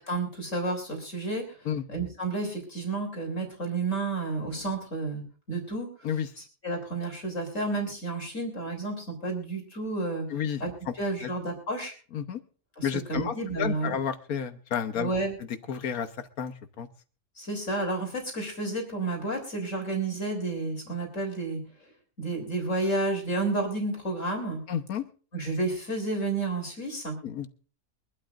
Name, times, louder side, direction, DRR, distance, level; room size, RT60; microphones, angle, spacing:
voice 1, 0.1-1.6 1.9-5.2 5.5-5.9 6.6-10.3 10.6-10.7 11.0-11.9 12.8-14.0 15.0-15.4 17.4-21.6 22.2-24.6 25.3-27.2, right 2 dB, 60° left, 2 dB, 4.1 m, -31 dB
voice 2, 10.3-10.6 10.9-11.0 11.2-11.3 12.1-12.4 12.8-15.1 15.7-16.1 16.4-16.9 24.7-25.0 27.2-27.5, left 8 dB, 80° left, 9 dB, 1.5 m, -31 dB
24.0 x 12.0 x 2.5 m, 0.38 s
omnidirectional pair, 1.5 m